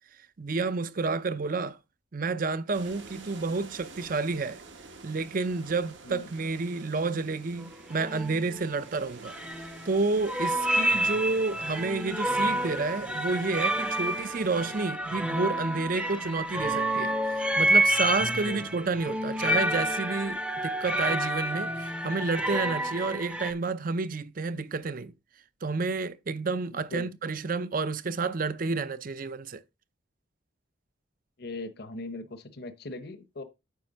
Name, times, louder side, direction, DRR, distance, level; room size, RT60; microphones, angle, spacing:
voice 1, 0.4-1.8 2.1-4.6 5.0-9.4 9.8-25.1 25.6-29.6, right 4 dB, 45° right, 0.6 m, -30 dB
sound 1, 2.7-14.9, right 3 dB, 70° right, 1.5 m, -49 dB
sound 2, 7.6-7.7 8.0-8.4 9.3-10.0 10.2-23.5, right 1 dB, 5° right, 0.6 m, -29 dB
voice 2, 18.2-18.7 26.7-27.1 31.4-33.4, left 2 dB, 55° left, 0.8 m, -40 dB
9.3 x 3.3 x 6.4 m
head